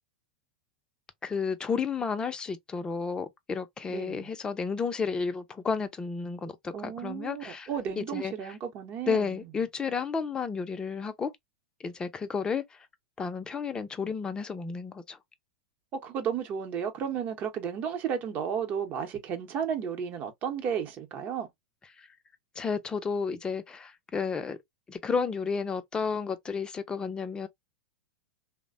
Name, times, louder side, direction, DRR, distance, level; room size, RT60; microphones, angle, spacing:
voice 1, 1.2-7.7 8.0-8.5 9.1-11.3 11.8-12.6 13.2-15.2 22.6-24.6 24.9-27.5, left 5 dB, 20° left, 0.5 m, -32 dB
voice 2, 3.9-4.3 6.7-9.5 16.0-21.5, right 8 dB, 40° right, 0.8 m, -33 dB
3.2 x 2.1 x 2.5 m
hypercardioid pair, 100°, 5 cm